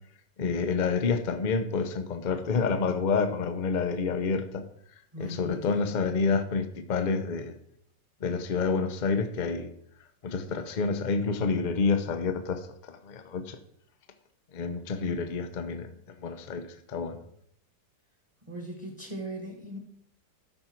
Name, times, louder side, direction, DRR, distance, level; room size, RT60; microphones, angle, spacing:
voice 1, 0.4-4.6 5.2-7.6 8.2-9.7 10.2-13.6 14.5-15.9 16.2-17.2, left 4 dB, 45° left, 8 dB, 0.6 m, -28 dB
voice 2, 5.1-5.8 18.5-19.8, right 1 dB, 20° right, 1 dB, 1.4 m, -39 dB
13.0 x 5.5 x 4.5 m, 0.68 s
omnidirectional pair, 2.0 m